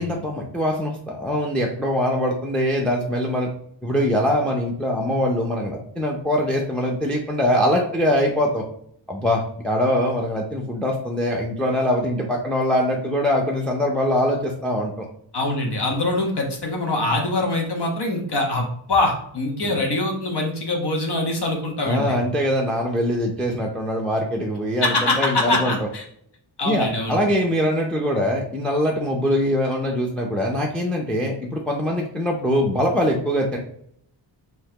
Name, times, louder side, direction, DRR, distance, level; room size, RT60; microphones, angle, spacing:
voice 1, 0.0-3.5 3.8-8.6 9.1-15.1 19.6-19.7 21.8-25.8 26.6-33.6, equal, ahead, 0 dB, 0.5 m, -23 dB
voice 2, 15.3-22.2 24.8-26.0 26.6-27.2, left 2 dB, 55° left, 1 dB, 1.2 m, -23 dB
5.4 x 3.2 x 2.9 m, 0.67 s
wide cardioid pair, 125°, 47 cm